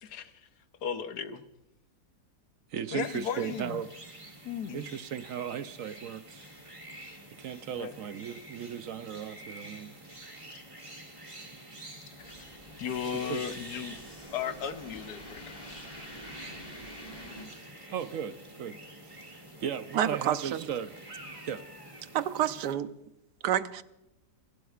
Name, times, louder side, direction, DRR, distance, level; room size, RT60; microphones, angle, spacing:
voice 1, 0.0-0.3 0.8-1.4 2.9-3.8 4.4-4.9 7.8-7.9 12.2-14.0 14.3-15.8, left 8 dB, 75° left, 1.4 m, -36 dB
voice 2, 2.7-3.9 4.7-6.5 7.4-9.9 13.1-13.4 17.9-18.8 19.0-20.9 21.5-21.6, right 8 dB, 65° right, 0.9 m, -36 dB
sound 1, 3.0-22.7, right 1 dB, 20° right, 2.1 m, -48 dB
sound 2, 12.1-17.5, equal, 35° left, 4.6 m, -47 dB
voice 3, 19.9-20.7 22.1-22.9 23.4-23.8, right 10 dB, 85° right, 1.3 m, -28 dB
29.0 x 12.0 x 2.4 m
omnidirectional pair, 1.7 m